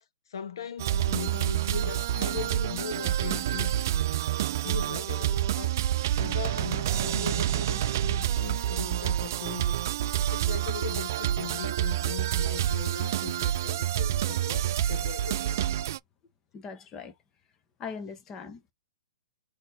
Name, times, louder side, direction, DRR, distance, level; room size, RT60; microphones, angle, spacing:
voice 1, 0.3-3.8 4.3-5.9 6.2-9.8 10.3-15.6, left 8 dB, 70° left, 0.7 m, -39 dB
sound 1, 0.8-16.0, right 12 dB, 45° right, 0.3 m, -28 dB
voice 2, 16.5-17.1 17.8-18.7, left 5 dB, 15° left, 0.9 m, -40 dB
4.1 x 2.9 x 4.4 m
hypercardioid pair, 165°, 2 cm